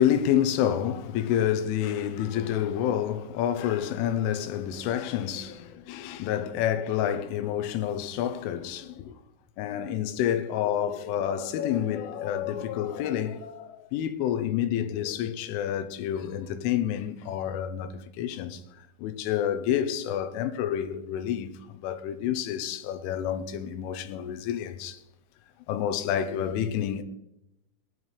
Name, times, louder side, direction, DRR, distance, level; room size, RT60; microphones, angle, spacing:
voice 1, 0.0-9.1 9.6-18.6 19.0-25.0 25.7-27.0, left 10 dB, 85° left, 3.3 m, -28 dB
19.5 x 10.5 x 3.2 m
omnidirectional pair, 5.6 m